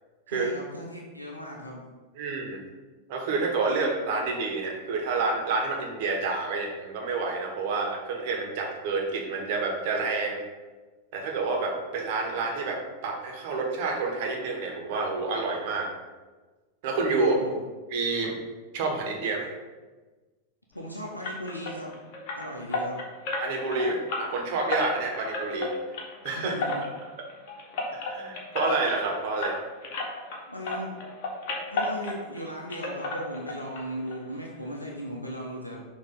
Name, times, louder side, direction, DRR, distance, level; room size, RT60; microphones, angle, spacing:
voice 1, 0.3-1.9 17.2-17.5 20.7-21.9 22.4-23.0 26.4-26.8 30.5-30.9 31.7-35.9, equal, 85° left, -2 dB, 0.7 m, -37 dB
voice 2, 2.2-2.6 3.1-10.4 11.1-15.9 16.8-17.3 17.9-18.4 18.7-19.5 23.4-25.7 26.2-26.5 28.0-29.6, right 3 dB, 50° right, 1 dB, 1.3 m, -28 dB
sound 1, 21.2-30.4 30.6-32.4 32.7-33.8 34.1-34.2 34.6-34.7 35.1-35.2, left 2 dB, 45° left, 1.4 m, -33 dB
6.5 x 2.9 x 5.3 m, 1.3 s
figure-of-eight pair, 90°, 0 cm